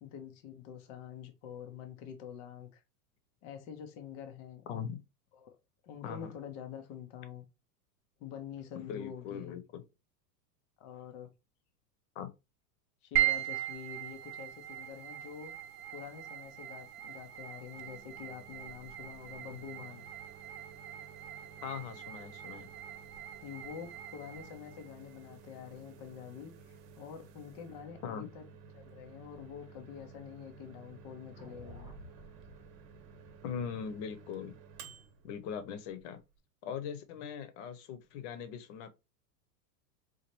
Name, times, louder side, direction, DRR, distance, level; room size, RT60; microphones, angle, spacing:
voice 1, 0.0-2.8 3.4-4.6 5.3-5.6 5.8-7.4 8.2-9.6 10.8-11.3 13.0-15.5 15.9-20.1 23.4-28.4 28.7-31.9, left 8 dB, 25° left, 0.3 m, -46 dB
voice 2, 8.8-9.8 12.1-12.3 21.6-22.7 28.0-28.3 33.4-34.5 35.2-36.2 36.6-38.9, left 7 dB, 50° left, 0.7 m, -40 dB
sound 1, 13.1-27.6, right 14 dB, 45° right, 0.8 m, -40 dB
Microwave oven, 17.7-36.4, right 5 dB, 75° right, 1.0 m, -54 dB
sound 2, 31.3-35.6, right 1 dB, 10° right, 1.0 m, -55 dB
4.1 x 2.5 x 2.9 m
supercardioid pair, 130°, 50 cm